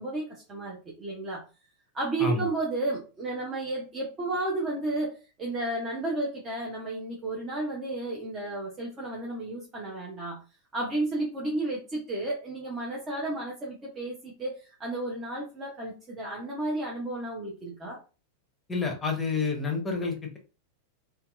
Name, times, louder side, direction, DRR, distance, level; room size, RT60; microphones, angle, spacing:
voice 1, 0.0-1.4 1.9-10.4 10.7-18.0, right 2 dB, 25° right, 0.7 m, -32 dB
voice 2, 18.7-20.4, left 4 dB, 15° left, 0.8 m, -29 dB
2.7 x 2.3 x 2.3 m
figure-of-eight pair, 90°, 0 cm